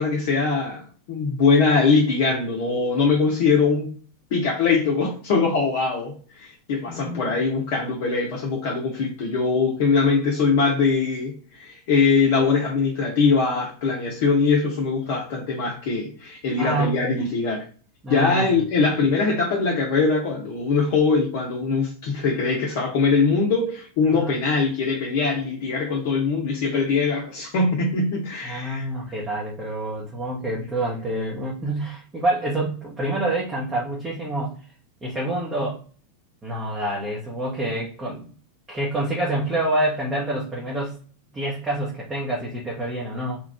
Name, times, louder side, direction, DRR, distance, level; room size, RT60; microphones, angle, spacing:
voice 1, 0.0-3.9 4.3-17.7 18.1-28.9, left 4 dB, 50° left, 0.7 m, -22 dB
voice 2, 6.9-7.3 16.6-17.1 18.0-18.5 18.9-19.1 24.1-24.3 28.4-34.6 35.0-35.8 36.4-38.3 38.7-41.0 41.3-43.4, right 1 dB, 15° right, 0.9 m, -27 dB
3.0 x 2.4 x 3.3 m
figure-of-eight pair, 90°, 0 cm